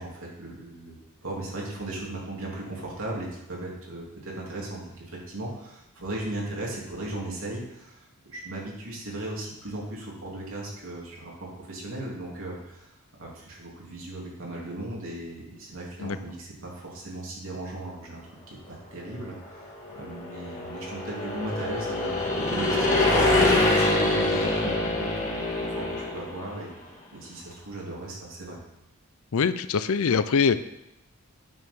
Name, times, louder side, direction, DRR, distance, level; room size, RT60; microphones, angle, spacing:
voice 1, 0.0-26.7 27.1-28.6, right 1 dB, 65° right, -3 dB, 2.9 m, -37 dB
sound 1, 19.6-26.5, left 2 dB, 35° left, 1.8 m, -25 dB
voice 2, 29.3-30.6, left 5 dB, 70° left, 13 dB, 0.5 m, -23 dB
9.3 x 6.5 x 5.4 m, 0.87 s
head